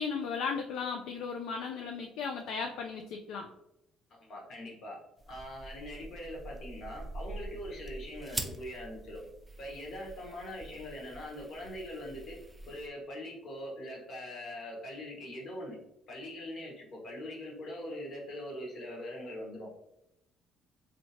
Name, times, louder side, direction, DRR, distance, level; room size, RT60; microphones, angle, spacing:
voice 1, 0.0-3.5, left 5 dB, 75° left, 3 dB, 0.3 m, -36 dB
voice 2, 4.1-5.0 5.3-9.2 9.6-12.4 12.6-15.8 16.1-19.7, left 1 dB, 60° left, -2 dB, 1.2 m, -42 dB
sound 1, 5.2-12.9, right 1 dB, 10° right, 0.5 m, -44 dB
3.0 x 2.7 x 2.8 m, 0.84 s
supercardioid pair, 65°, 0 cm